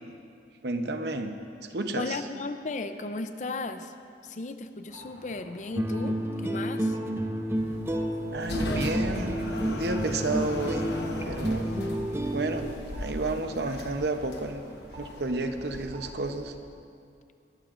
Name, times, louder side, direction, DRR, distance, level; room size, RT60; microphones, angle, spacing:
voice 1, 0.6-1.4 1.7-2.2 8.3-10.9 11.2-11.7 12.3-12.7 13.0-14.6 15.0-16.5, right 2 dB, 70° right, 7 dB, 0.8 m, -31 dB
voice 2, 2.0-3.9 4.2-7.0, left 3 dB, 45° left, 9 dB, 0.5 m, -35 dB
sound 1, 4.9-16.2, equal, 35° right, 1.6 m, -49 dB
sound 2, 5.8-12.7, right 1 dB, 15° right, 0.5 m, -30 dB
sound 3, 7.6-16.7, left 1 dB, 75° left, 1.1 m, -37 dB
20.5 x 13.0 x 2.5 m, 2.3 s
head